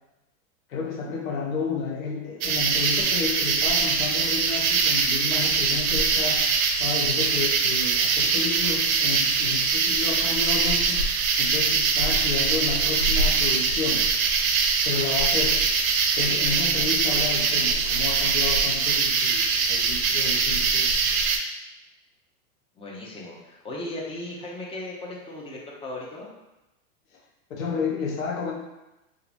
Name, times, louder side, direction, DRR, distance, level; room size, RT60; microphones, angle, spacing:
voice 1, 0.7-6.5 6.8-11.0 11.4-14.1 14.9-15.6 16.2-20.9 27.6-28.5, left 5 dB, 75° left, -1 dB, 0.8 m, -31 dB
sound 1, 2.4-21.4, right 5 dB, 80° right, 0.5 m, -23 dB
voice 2, 22.8-26.3, left 1 dB, 15° left, -3 dB, 0.5 m, -37 dB
2.9 x 2.5 x 2.5 m, 0.98 s
hypercardioid pair, 115°, 42 cm